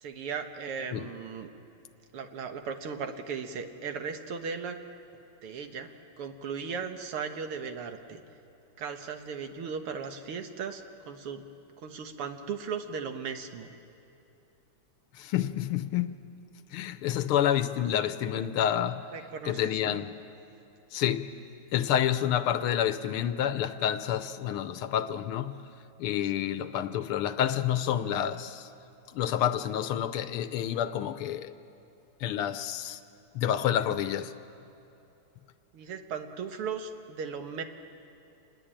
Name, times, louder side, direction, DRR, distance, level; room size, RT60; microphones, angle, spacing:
voice 1, 0.0-1.5 2.1-4.8 5.4-8.2 8.8-11.5 11.8-13.7 19.1-20.0 35.7-37.6, right 6 dB, 80° right, 6 dB, 2.3 m, -37 dB
voice 2, 15.2-16.1 16.7-19.0 19.5-20.1 20.9-21.3 21.7-25.5 26.0-28.7 29.1-31.5 32.2-33.0 33.4-34.3, left 10 dB, 80° left, 12 dB, 1.7 m, -28 dB
27.5 x 20.5 x 8.8 m, 2.8 s
omnidirectional pair, 2.4 m